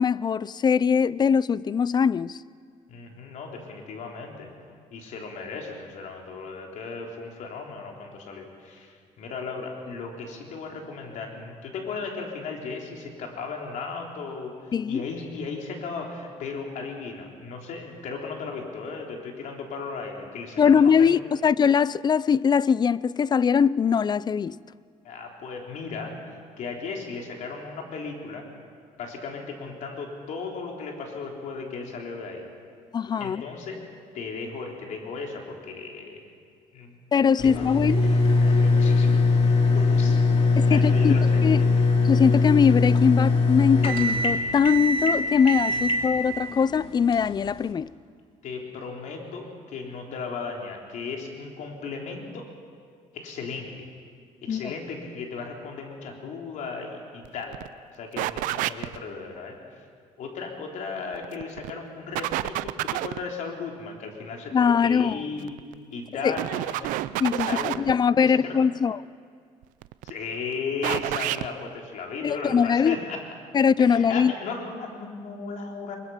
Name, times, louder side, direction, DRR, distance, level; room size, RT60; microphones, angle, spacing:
voice 1, 0.0-2.4 14.7-15.1 20.6-24.6 32.9-33.4 37.1-38.0 40.6-41.2 41.4-41.6 42.0-47.9 54.5-54.7 64.5-65.2 66.2-66.3 67.2-67.5 67.8-69.0 72.2-73.0 73.5-74.3, left 6 dB, 35° left, 0.4 m, -21 dB
voice 2, 2.9-4.5 4.9-21.2 25.0-26.2 26.6-28.5 29.0-32.5 33.2-33.8 34.1-36.2 36.7-37.0 37.4-37.8 38.0-39.2 39.6-40.4 40.7-41.7 45.7-46.0 48.4-52.5 53.1-53.7 54.4-57.6 57.9-59.6 60.2-65.6 65.9-66.9 67.4-67.8 68.2-68.6 70.0-73.2 73.8-76.0, left 4 dB, 70° left, 3.8 m, -36 dB
sound 1, 37.4-47.7, left 3 dB, 50° left, 2.8 m, -21 dB
sound 2, 57.2-57.3 57.5-57.7 58.2-59.0 61.1-61.7 62.2-63.2 65.4-65.7 66.4-67.9 69.6-70.1 70.8-71.5, right 16 dB, 90° right, 0.5 m, -29 dB
22.5 x 22.0 x 5.8 m
cardioid pair, 95°, 13 cm